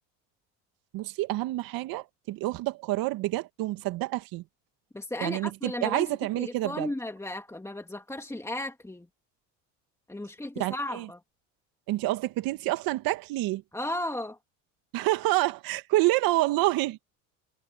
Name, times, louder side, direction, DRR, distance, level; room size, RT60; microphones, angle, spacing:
voice 1, 0.9-4.4 5.2-6.9 10.6-11.1 11.9-13.6 14.9-17.0, right 18 dB, 60° right, 1.9 m, -28 dB
voice 2, 4.9-6.1 6.4-9.1 10.1-11.2 13.7-14.4, left 1 dB, 5° left, 2.6 m, -35 dB
supercardioid pair, 90°, 39 cm